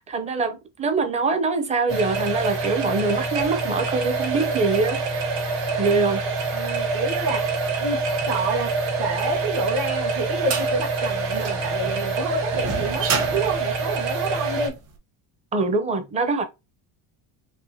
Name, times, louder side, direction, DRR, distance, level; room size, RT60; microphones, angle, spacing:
voice 1, 0.1-5.3 5.8-6.2 15.5-16.4, right 3 dB, 15° right, 0.6 m, -24 dB
sound 1, 1.9-14.7, right 3 dB, 80° right, 2.7 m, -26 dB
voice 2, 6.1-14.8, right 3 dB, 60° right, 2.2 m, -29 dB
sound 2, 9.4-14.8, right 5 dB, 35° right, 1.3 m, -31 dB
5.9 x 2.6 x 2.9 m
cardioid pair, 165°, 43 cm